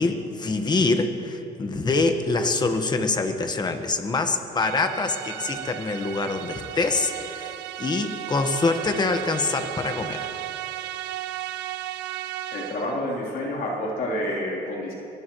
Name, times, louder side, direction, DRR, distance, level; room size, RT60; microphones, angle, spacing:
voice 1, 0.0-10.3, left 3 dB, 25° left, 6 dB, 1.4 m, -25 dB
sound 1, 4.6-13.1, right 13 dB, 85° right, 0.6 m, -35 dB
voice 2, 12.5-14.9, left 1 dB, 60° left, -3 dB, 3.6 m, -28 dB
23.0 x 18.0 x 3.2 m, 2.9 s
cardioid pair, 110°, 17 cm